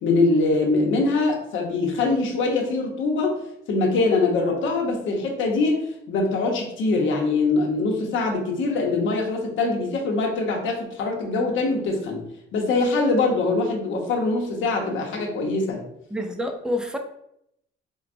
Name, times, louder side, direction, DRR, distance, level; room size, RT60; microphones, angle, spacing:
voice 1, 0.0-3.4 3.7-12.2 12.5-15.8, left 3 dB, 75° left, 1 dB, 0.9 m, -23 dB
voice 2, 16.1-17.0, left 1 dB, 5° right, 5 dB, 0.5 m, -27 dB
4.4 x 2.3 x 2.5 m, 0.77 s
cardioid pair, 90°, 20 cm